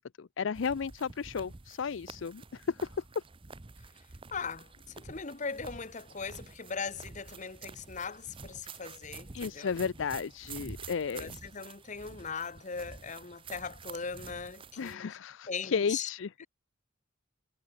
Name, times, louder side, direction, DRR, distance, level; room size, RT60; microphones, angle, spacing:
voice 1, 0.0-2.4 2.7-2.9 9.3-11.4 14.8-16.5, left 6 dB, 70° left, 0.5 m, -33 dB
sound 1, 0.5-15.0, right 4 dB, 25° right, 0.7 m, -49 dB
voice 2, 4.3-9.7 11.1-15.2 15.5-16.1 16.4-16.5, left 5 dB, 35° left, 1.1 m, -39 dB
head